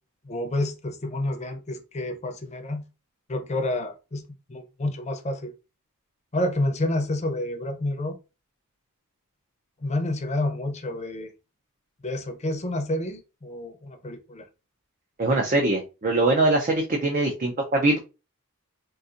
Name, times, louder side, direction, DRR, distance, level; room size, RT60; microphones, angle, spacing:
voice 1, 0.2-2.9 3.3-5.5 6.3-8.2 9.8-11.3 12.0-14.5, left 1 dB, 30° left, 0.6 m, -29 dB
voice 2, 15.2-18.0, right 2 dB, 40° right, 0.5 m, -22 dB
3.9 x 2.5 x 2.5 m
head